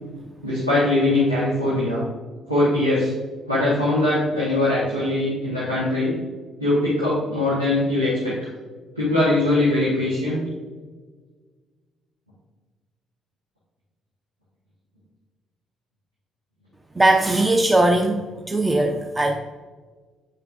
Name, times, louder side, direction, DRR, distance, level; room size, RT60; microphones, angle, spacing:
voice 1, 0.4-2.0 2.5-3.1 3.5-6.1 6.6-8.3 8.9-10.4, left 2 dB, 90° right, -8 dB, 1.3 m, -21 dB
voice 2, 17.0-18.2 18.5-19.3, right 2 dB, 15° right, 3 dB, 0.6 m, -19 dB
8.8 x 6.6 x 2.5 m, 1.4 s
figure-of-eight pair, 45°, 0 cm